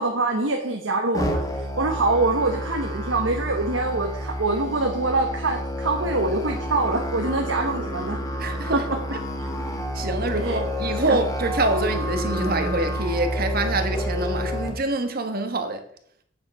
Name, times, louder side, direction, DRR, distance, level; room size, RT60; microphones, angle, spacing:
voice 1, 0.0-1.4 1.8-8.5 9.4-9.5 10.4-10.6 11.1-11.2, right 2 dB, 90° right, 1.2 m, -24 dB
Musical instrument, 1.1-14.7, equal, 20° left, 1.5 m, -29 dB
voice 2, 8.4-8.9 9.9-15.8, right 2 dB, 50° right, 1.3 m, -25 dB
8.6 x 7.3 x 5.4 m
head